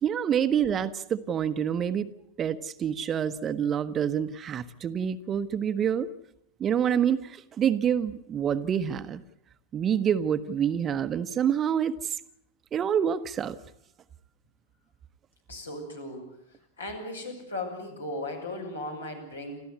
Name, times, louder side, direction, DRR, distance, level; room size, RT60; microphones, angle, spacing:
voice 1, 0.0-2.1 2.4-6.1 6.6-9.2 9.7-12.2 12.7-13.6, right 8 dB, 25° right, 11 dB, 1.1 m, -27 dB
voice 2, 15.5-16.3 16.8-19.6, left 2 dB, 75° left, 2 dB, 6.7 m, -36 dB
28.5 x 14.0 x 9.8 m, 0.77 s
figure-of-eight pair, 90°, 0 cm